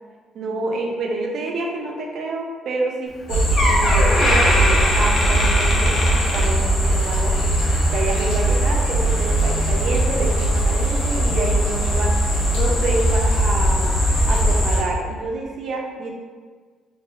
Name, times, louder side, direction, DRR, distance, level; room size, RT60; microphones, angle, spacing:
voice 1, 0.3-7.6 7.9-13.9 14.2-16.1, right 2 dB, 65° right, 0 dB, 0.7 m, -28 dB
Door, 3.1-3.2 3.6-7.1 7.4-7.7 8.4-8.5, left 1 dB, 45° left, 0.9 m, -22 dB
sound 1, 3.3-14.8, right 1 dB, 85° left, 1.1 m, -19 dB
3.2 x 2.6 x 3.8 m, 1.5 s
cardioid pair, 90°, 0 cm